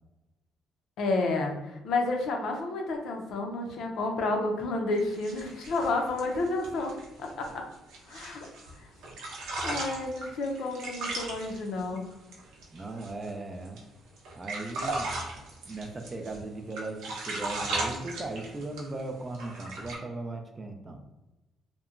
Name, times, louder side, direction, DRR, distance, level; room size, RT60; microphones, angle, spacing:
voice 1, 1.0-6.9 7.2-7.6 8.1-8.5 9.6-12.0, left 2 dB, 65° left, 2 dB, 0.5 m, -30 dB
sound 1, 5.0-8.7 9.0-13.3 13.6-13.8 14.2-16.4 16.7-19.0 19.3-20.0, right 2 dB, 90° right, 0.7 m, -37 dB
voice 2, 12.7-13.8 14.4-15.1 15.7-21.0, right 2 dB, 25° right, 5 dB, 0.3 m, -38 dB
2.8 x 2.1 x 2.4 m, 1.0 s
cardioid pair, 130°, 0 cm